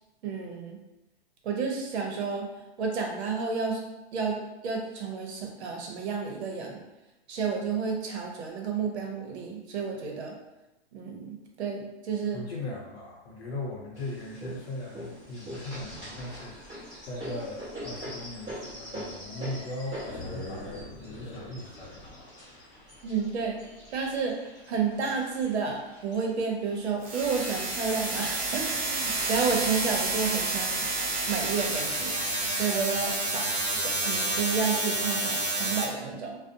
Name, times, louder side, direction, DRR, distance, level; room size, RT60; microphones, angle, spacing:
voice 1, 0.2-0.8 1.4-2.5 2.8-3.8 4.1-6.8 7.3-10.3 10.9-12.4 23.0-23.6 23.9-24.4 24.7-30.9 31.3-32.1 32.5-33.4 33.7-36.4, right 5 dB, 75° right, 1 dB, 0.7 m, -31 dB
voice 2, 12.3-22.3, left 1 dB, 70° left, -2 dB, 0.7 m, -39 dB
sound 1, 13.9-24.2 24.9-25.8 26.2-26.3 26.6-27.3 28.1-28.2 28.8-29.2, equal, 10° right, 0.7 m, -42 dB
sound 2, 16.6-16.9 17.3-17.7 18.1-18.2 19.0-28.1, left 2 dB, 30° left, 0.9 m, -46 dB
sound 3, 27.0-35.8, right 2 dB, 45° right, 0.8 m, -29 dB
2.5 x 2.1 x 2.6 m, 0.98 s
supercardioid pair, 165°, 33 cm